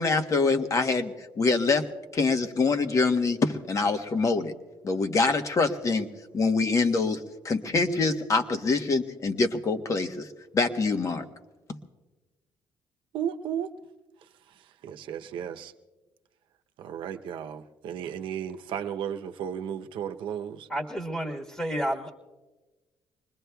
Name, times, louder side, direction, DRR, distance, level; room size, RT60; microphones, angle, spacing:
voice 1, 0.0-1.8 2.1-4.5 4.8-6.1 6.3-10.3 10.5-11.2, left 3 dB, 40° left, 7 dB, 1.1 m, -25 dB
voice 2, 13.1-13.7 14.8-15.7 16.8-20.7, right 9 dB, 75° right, 7 dB, 0.8 m, -34 dB
voice 3, 20.7-22.1, right 1 dB, 15° left, 2 dB, 1.5 m, -30 dB
25.5 x 20.5 x 2.3 m, 1.2 s
cardioid pair, 95°, 9 cm